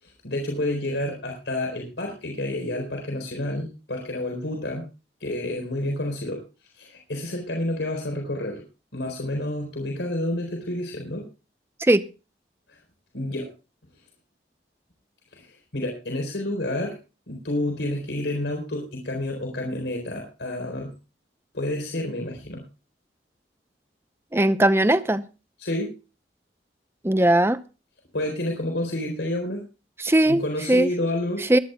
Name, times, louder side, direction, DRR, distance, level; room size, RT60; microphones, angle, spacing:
voice 1, 0.0-4.8 5.2-6.4 6.7-8.6 8.9-11.3 12.7-12.8 13.1-13.5 15.3-17.0 17.3-20.9 21.5-22.7 25.6-25.9 28.1-29.6 30.3-31.5, left 1 dB, 85° left, 2 dB, 4.3 m, -29 dB
voice 2, 24.3-25.2 27.0-27.6 30.0-30.4 30.7-30.9 31.5-31.6, right 1 dB, 15° right, 13 dB, 0.7 m, -18 dB
23.5 x 11.5 x 2.3 m, 0.32 s
head